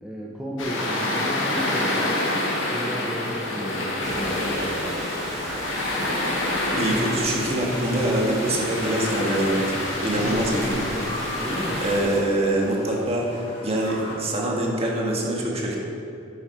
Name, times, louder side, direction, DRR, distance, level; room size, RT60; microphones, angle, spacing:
voice 1, 0.0-2.1 2.7-5.0 10.1-11.8, equal, 5° right, -4 dB, 0.7 m, -34 dB
sound 1, 0.6-12.0, left 1 dB, 85° left, 1.6 m, -27 dB
Rain, 4.0-12.2, right 1 dB, 70° right, 2.1 m, -36 dB
sound 2, 5.0-14.2, left 1 dB, 30° left, 1.5 m, -40 dB
voice 2, 6.7-10.8 11.8-15.8, right 1 dB, 30° right, -2 dB, 1.6 m, -24 dB
9.9 x 7.2 x 4.3 m, 2.5 s
head